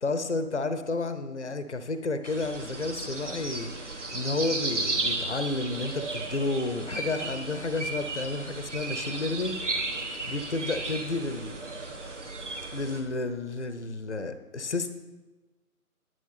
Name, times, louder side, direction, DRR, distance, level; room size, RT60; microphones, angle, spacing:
voice 1, 0.0-9.6 10.3-11.9 12.7-14.9, left 3 dB, 50° left, 10 dB, 0.7 m, -31 dB
sound 1, 2.2-13.0, right 2 dB, 50° right, 1.7 m, -34 dB
10.5 x 9.1 x 4.1 m, 1.2 s
figure-of-eight pair, 160°, 46 cm